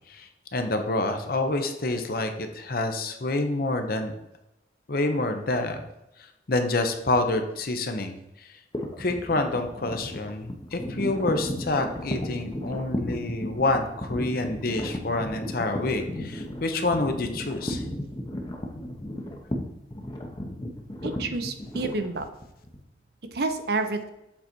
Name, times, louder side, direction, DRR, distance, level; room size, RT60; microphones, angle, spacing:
voice 1, 0.1-4.1 4.9-5.8 6.2-8.6 9.0-17.8, left 2 dB, 55° left, 6 dB, 0.8 m, -28 dB
sound 1, 8.7-22.8, left 1 dB, 25° left, 0.8 m, -34 dB
voice 2, 21.0-22.3 23.3-24.1, right 3 dB, 60° right, 7 dB, 0.7 m, -29 dB
7.5 x 4.1 x 4.5 m, 0.87 s
head